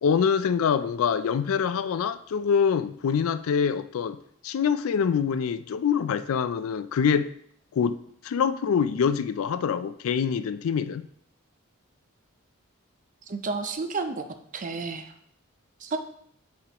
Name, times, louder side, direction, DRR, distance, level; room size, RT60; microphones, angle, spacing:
voice 1, 0.0-4.2 4.4-7.3 7.7-8.0 8.2-11.0, left 7 dB, 75° left, 0.3 m, -25 dB
voice 2, 13.3-14.3 14.5-15.1 15.8-16.0, right 4 dB, 35° right, 0.5 m, -31 dB
8.2 x 4.4 x 2.9 m
head